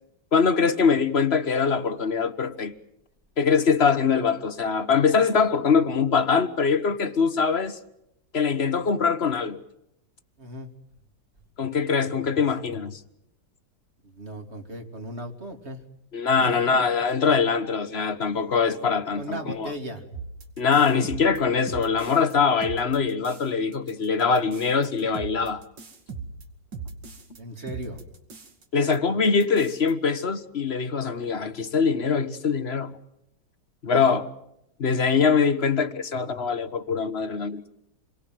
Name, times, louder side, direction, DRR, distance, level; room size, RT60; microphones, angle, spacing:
voice 1, 0.3-2.7 3.4-7.8 8.3-9.6 11.6-13.0 16.1-19.7 20.6-25.6 28.7-33.0 33.8-34.3 34.8-37.6, left 5 dB, 40° left, 1.4 m, -23 dB
voice 2, 10.4-10.7 14.0-15.8 16.3-16.8 19.2-20.0 27.4-28.0 33.9-34.0, right 1 dB, 35° right, 3.2 m, -37 dB
sound 1, 20.1-22.3 22.6-23.5 23.7-27.4 27.7-28.6 28.9-29.0 29.2-29.9, right 4 dB, 80° right, 3.0 m, -39 dB
28.0 x 23.0 x 7.8 m
omnidirectional pair, 1.9 m